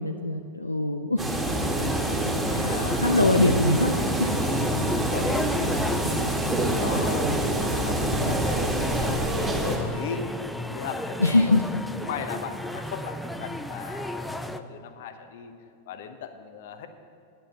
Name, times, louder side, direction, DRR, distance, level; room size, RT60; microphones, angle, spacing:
voice 1, 0.0-1.4 2.5-2.7 3.0-4.5 11.2-11.6, left 2 dB, 80° left, 5 dB, 0.4 m, -23 dB
sound 1, 1.2-9.8, right 1 dB, 15° right, 1.7 m, -26 dB
sound 2, 1.6-14.6, left 1 dB, 5° left, 0.4 m, -33 dB
voice 2, 1.9-2.2 2.6-3.5 4.6-9.2 9.5-11.6 12.0-15.5 15.9-16.9, left 7 dB, 55° left, 8 dB, 0.8 m, -38 dB
10.0 x 6.1 x 7.9 m, 2.5 s
figure-of-eight pair, 90°, 0 cm